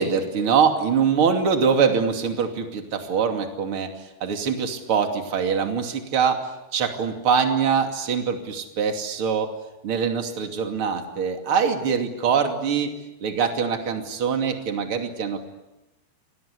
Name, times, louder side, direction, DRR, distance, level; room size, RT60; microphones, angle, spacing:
voice 1, 0.0-9.5 9.8-12.9 13.2-15.4, right 6 dB, 35° right, 4 dB, 3.0 m, -23 dB
29.5 x 24.5 x 8.4 m, 0.99 s
omnidirectional pair, 4.7 m